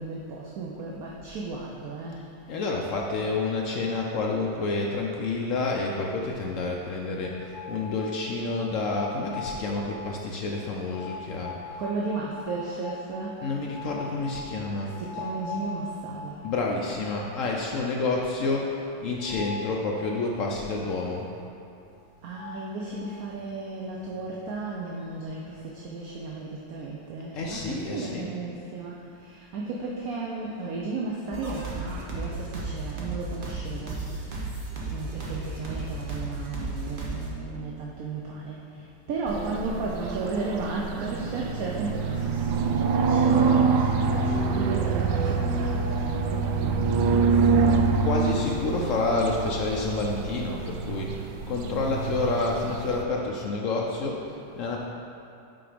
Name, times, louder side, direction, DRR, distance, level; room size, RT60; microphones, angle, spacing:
voice 1, 0.0-2.2 11.8-13.4 15.0-16.4 22.2-34.3 34.9-47.7, right 3 dB, 65° right, -3 dB, 1.0 m, -34 dB
voice 2, 2.5-11.5 13.4-15.0 16.4-21.3 27.3-28.3 48.0-54.9, left 3 dB, 70° left, -1 dB, 0.7 m, -29 dB
sound 1, 7.2-8.3 8.8-9.7 10.9-16.5 17.0-17.1 17.5-17.6 19.2-19.7 22.0-22.1 22.3-22.7, left 4 dB, 90° left, 1.3 m, -40 dB
sound 2, 31.3-37.3, right 2 dB, 40° right, 0.8 m, -34 dB
sound 3, 39.3-53.0, right 4 dB, 85° right, 0.7 m, -25 dB
5.9 x 4.8 x 5.0 m, 2.8 s
omnidirectional pair, 2.0 m